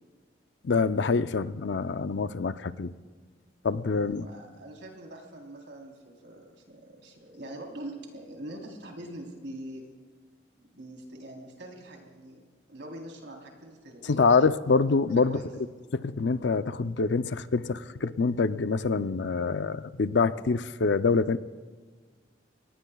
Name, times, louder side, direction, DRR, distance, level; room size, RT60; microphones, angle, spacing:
voice 1, 0.6-2.9 3.6-4.3 14.1-15.4 16.0-21.4, left 4 dB, 80° left, 12 dB, 0.5 m, -25 dB
voice 2, 3.9-9.8 10.7-12.4 12.7-14.3 15.3-15.5, right 1 dB, 90° right, 1 dB, 3.6 m, -43 dB
26.0 x 19.0 x 2.3 m, 1.5 s
head